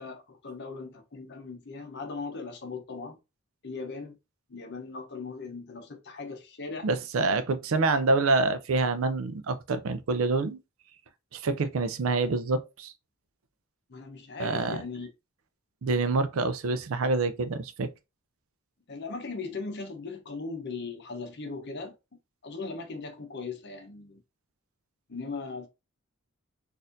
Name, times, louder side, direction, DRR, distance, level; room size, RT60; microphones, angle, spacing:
voice 1, 0.0-3.2 3.6-4.2 4.5-6.9 13.9-15.1 18.9-21.9 22.4-24.2 25.1-25.7, left 4 dB, 50° left, 0.8 m, -38 dB
voice 2, 6.8-10.6 11.3-12.9 14.4-14.8 15.8-17.9, right 3 dB, 65° right, 0.5 m, -26 dB
4.1 x 2.6 x 2.5 m
head